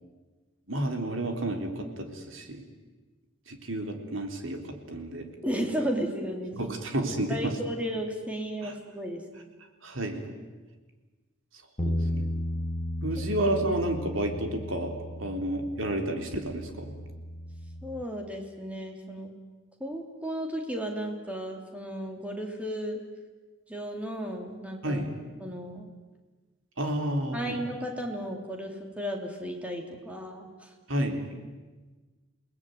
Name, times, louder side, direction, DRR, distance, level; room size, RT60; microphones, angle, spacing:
voice 1, 0.7-2.6 3.5-4.6 4.9-5.2 6.6-7.5 8.6-8.7 9.8-10.3 11.8-12.3 13.0-14.9 15.2-16.9 24.8-25.1 26.8-27.6 30.9-31.2, right 1 dB, 65° right, 4 dB, 3.7 m, -30 dB
voice 2, 5.4-6.7 7.1-9.2 13.2-13.3 17.8-19.3 19.8-23.0 23.7-25.0 25.4-25.9 27.3-30.7, equal, 5° right, 2 dB, 3.3 m, -34 dB
sound 1, 11.8-18.0, left 1 dB, 30° left, 1.4 m, -34 dB
29.0 x 19.5 x 9.5 m, 1.3 s
head